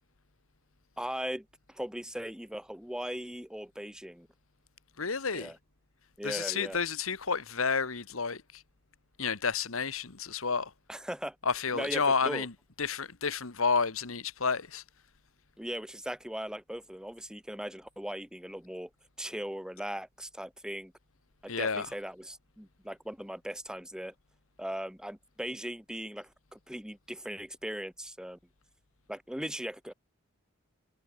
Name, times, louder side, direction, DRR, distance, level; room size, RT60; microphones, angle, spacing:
voice 1, 1.0-4.3 5.3-5.6 6.2-6.8 10.9-11.3 11.7-12.5 15.6-18.9 19.2-20.9 21.4-24.1 24.6-28.4 29.1-29.9, equal, 5° right, 1.5 m, -39 dB
voice 2, 5.0-5.5 6.2-8.6 9.2-10.7 11.4-12.5 12.8-14.8 21.5-21.9, left 5 dB, 70° left, 1.6 m, -30 dB
head